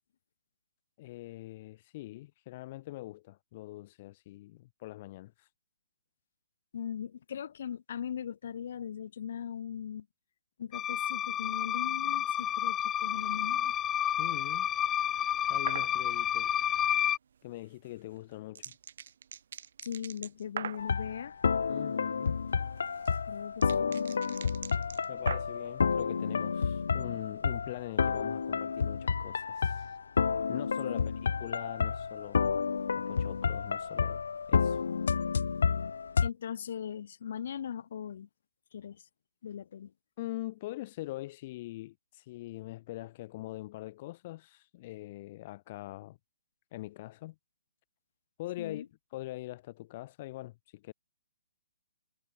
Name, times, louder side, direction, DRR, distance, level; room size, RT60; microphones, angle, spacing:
voice 1, 1.0-5.5 14.2-14.7 15.5-16.6 17.4-18.7 21.7-22.4 23.9-24.0 25.1-30.0 30.5-31.1 31.4-32.6 32.9-34.2 34.5-34.8 40.2-46.2 46.7-47.3 48.4-48.8 49.1-50.9, left 17 dB, 30° left, 3.3 m, -43 dB
voice 2, 6.7-10.1 10.6-13.8 19.8-21.3 23.3-24.4 30.9-31.0 36.2-38.3 38.7-39.1 39.4-39.9 48.6-48.9, left 8 dB, 50° left, 5.6 m, -39 dB
sound 1, 10.7-17.2, left 10 dB, 10° left, 0.6 m, -30 dB
sound 2, 15.7-15.9 17.8-20.9 22.5-25.7, right 8 dB, 55° right, 6.6 m, -42 dB
sound 3, 20.8-36.3, left 5 dB, 80° left, 0.7 m, -30 dB
hypercardioid pair, 165°, 0 cm